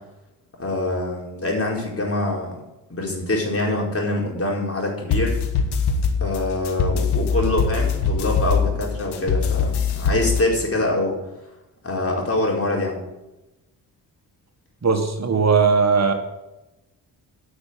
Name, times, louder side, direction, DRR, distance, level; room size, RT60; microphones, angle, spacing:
voice 1, 0.6-2.6 2.9-5.4 6.2-11.2 11.8-13.0, left 2 dB, 35° left, -1 dB, 4.5 m, -24 dB
sound 1, 5.1-10.4, left 5 dB, 80° left, 1.4 m, -22 dB
voice 2, 14.8-16.1, right 5 dB, 40° right, 5 dB, 1.6 m, -18 dB
10.0 x 6.3 x 8.5 m, 0.99 s
supercardioid pair, 55°, 40 cm